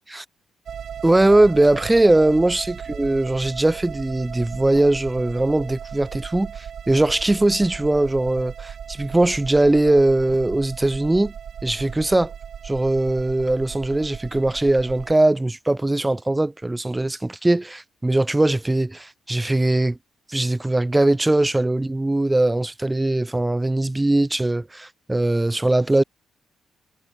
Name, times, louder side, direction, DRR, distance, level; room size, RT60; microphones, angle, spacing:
sound 1, 0.7-15.1, right 8 dB, 55° right, 0.6 m, -36 dB
voice 1, 1.0-11.3 11.6-12.3 12.6-20.0 20.3-26.0, right 2 dB, 10° right, 0.4 m, -20 dB
cardioid pair, 90°, 0 cm